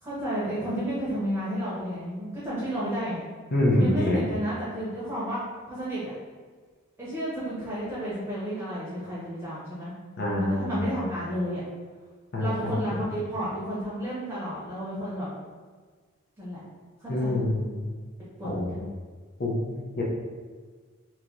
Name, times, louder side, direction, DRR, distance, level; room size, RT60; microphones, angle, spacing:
voice 1, 0.0-3.2 3.7-6.1 7.0-9.9 10.3-11.6 12.4-15.4 16.4-16.6 17.0-17.4 18.4-18.8, equal, 10° right, -9 dB, 0.8 m, -32 dB
voice 2, 3.5-4.2 10.2-10.7 12.3-12.8 17.1-17.9 18.4-18.9 19.4-20.0, left 1 dB, 50° left, -4 dB, 0.7 m, -26 dB
3.1 x 2.9 x 3.7 m, 1.5 s
head